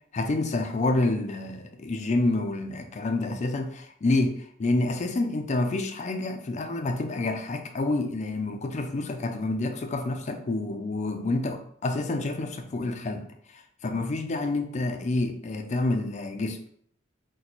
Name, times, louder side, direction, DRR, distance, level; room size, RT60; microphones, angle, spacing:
voice 1, 0.1-4.3 4.6-13.3 13.8-16.6, left 2 dB, 35° left, 6 dB, 0.4 m, -28 dB
2.9 x 2.2 x 4.0 m, 0.64 s
head